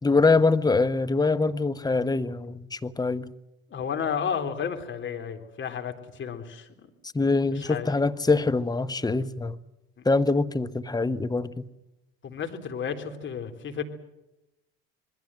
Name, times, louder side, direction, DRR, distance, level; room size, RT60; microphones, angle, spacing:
voice 1, 0.0-3.3 7.1-9.6 10.0-11.7, left 3 dB, 15° left, 1.3 m, -24 dB
voice 2, 3.7-6.7 7.5-7.9 12.2-13.8, left 7 dB, 40° left, 3.7 m, -32 dB
26.5 x 21.5 x 7.8 m
hypercardioid pair, 70°, 30 cm